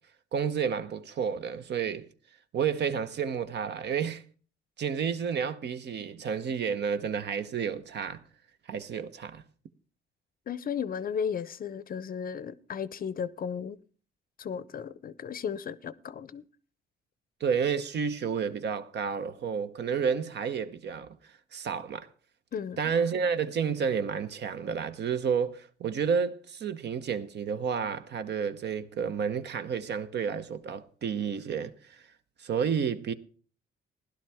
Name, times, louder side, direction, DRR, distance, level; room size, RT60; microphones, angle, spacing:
voice 1, 0.3-2.1 2.5-4.2 4.8-8.2 8.7-9.4 17.4-21.2 21.5-22.1 22.8-32.0 32.4-33.1, right 6 dB, 60° right, 0.9 m, -30 dB
voice 2, 10.5-13.8 14.4-16.4 22.5-22.9, left 7 dB, 45° left, 0.6 m, -35 dB
16.0 x 11.5 x 3.5 m
cardioid pair, 90°, 20 cm